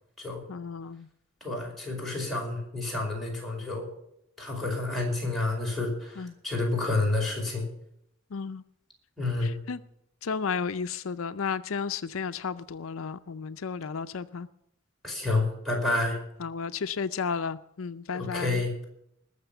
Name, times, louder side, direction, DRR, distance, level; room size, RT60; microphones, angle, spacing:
voice 1, 0.5-1.1 6.2-6.4 8.3-8.6 9.4-9.8 10.2-14.5 16.4-18.6, left 5 dB, 80° left, 0.5 m, -33 dB
voice 2, 1.4-3.9 4.4-7.6 9.2-9.6 15.0-16.2 18.1-18.8, left 2 dB, ahead, 5.0 m, -29 dB
20.0 x 6.8 x 6.8 m
head